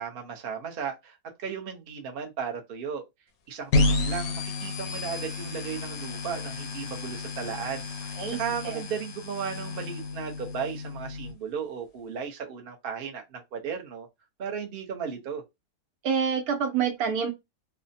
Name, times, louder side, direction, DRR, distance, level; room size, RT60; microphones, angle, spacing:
voice 1, 0.0-3.0 3.5-14.1 14.4-15.4, right 7 dB, 50° right, 0.8 m, -35 dB
sound 1, 3.7-11.3, left 2 dB, 80° left, 1.1 m, -31 dB
voice 2, 16.0-17.3, right 7 dB, 90° right, 1.2 m, -27 dB
3.3 x 2.0 x 2.6 m
omnidirectional pair, 1.5 m